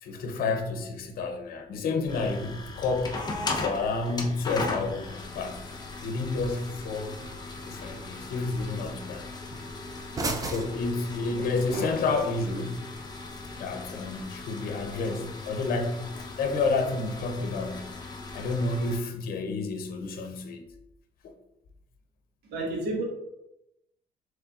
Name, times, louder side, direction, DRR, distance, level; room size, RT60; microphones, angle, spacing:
voice 1, 0.0-3.2 3.6-5.6 6.0-7.2 7.6-9.3 10.5-12.7 13.6-17.9 18.3-20.7 21.2-21.3, left 3 dB, 60° left, 0.8 m, -30 dB
sound 1, 2.1-19.0, left 3 dB, 25° left, 0.8 m, -38 dB
sound 2, 3.7-11.7, right 3 dB, 20° right, 0.5 m, -41 dB
voice 2, 11.2-12.2 22.4-23.0, right 2 dB, 75° right, 1.5 m, -34 dB
5.5 x 3.7 x 2.4 m
cardioid pair, 110°, 17 cm